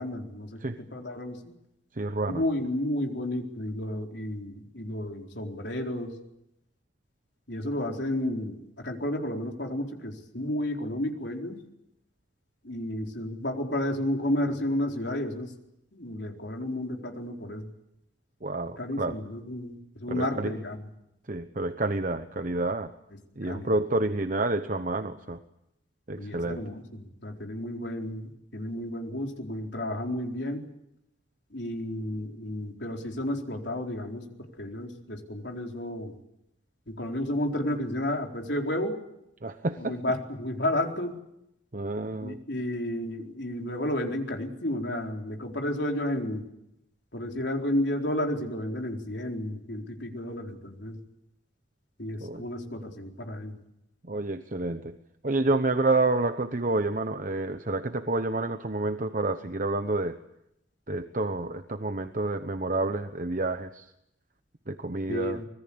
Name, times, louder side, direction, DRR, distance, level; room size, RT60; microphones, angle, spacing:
voice 1, 0.0-1.4 2.3-6.1 7.5-11.6 12.6-15.5 15.9-17.7 18.8-20.8 23.5-23.8 26.2-30.7 31.5-34.3 34.6-36.2 36.9-39.0 39.8-41.2 42.2-46.5 47.1-51.0 52.0-53.6 65.1-65.5, left 1 dB, 65° left, 2 dB, 4.3 m, -32 dB
voice 2, 2.0-2.4 18.4-19.2 20.1-20.5 21.3-22.9 23.4-25.4 26.1-26.6 39.4-40.0 41.7-42.4 52.2-52.4 54.0-54.9 55.2-60.2 60.9-63.9 64.7-65.4, right 2 dB, 45° right, 9 dB, 1.0 m, -29 dB
25.0 x 21.0 x 8.7 m, 0.82 s
head